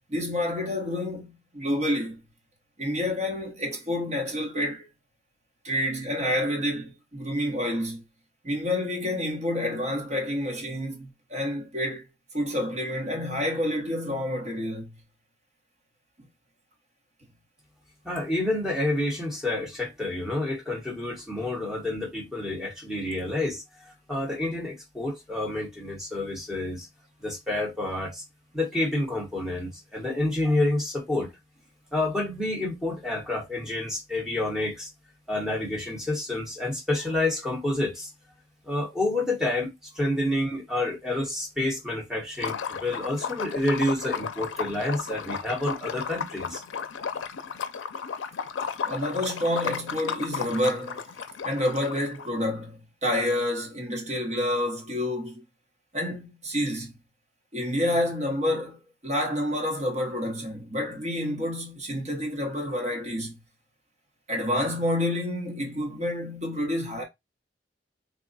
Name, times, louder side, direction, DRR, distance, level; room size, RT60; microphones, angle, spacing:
voice 1, 0.1-2.1 2.8-4.8 5.6-8.0 8.4-12.0 12.3-14.9 48.6-51.0 51.4-55.4 55.9-56.9 57.5-58.8 59.0-63.4 64.3-67.0, left 1 dB, 40° right, 1.2 m, -28 dB
voice 2, 18.0-23.6 24.1-26.9 27.2-28.2 28.5-31.3 31.9-34.9 35.3-38.1 38.6-46.6, left 1 dB, 5° right, 1.1 m, -29 dB
Liquid, 42.3-52.3, left 6 dB, 90° left, 0.4 m, -34 dB
3.5 x 2.3 x 4.0 m
head